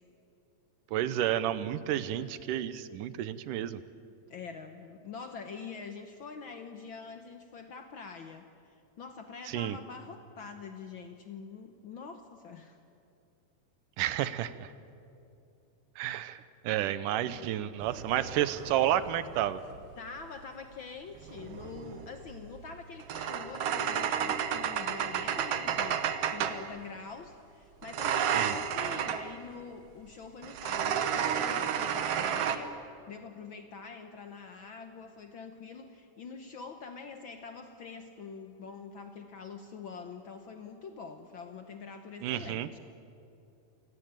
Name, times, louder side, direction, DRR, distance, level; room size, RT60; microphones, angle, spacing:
voice 1, 0.9-3.8 9.5-9.8 14.0-14.7 16.0-19.6 28.3-28.6 42.2-42.7, right 12 dB, 80° right, 15 dB, 2.3 m, -31 dB
voice 2, 4.3-12.8 20.0-32.8 33.1-42.8, left 5 dB, 85° left, 7 dB, 1.1 m, -45 dB
sound 1, 17.8-19.9 21.1-26.7 27.8-29.3 30.4-32.6, right 8 dB, 60° right, 1.8 m, -32 dB
27.0 x 17.5 x 9.0 m, 2.7 s
omnidirectional pair, 3.7 m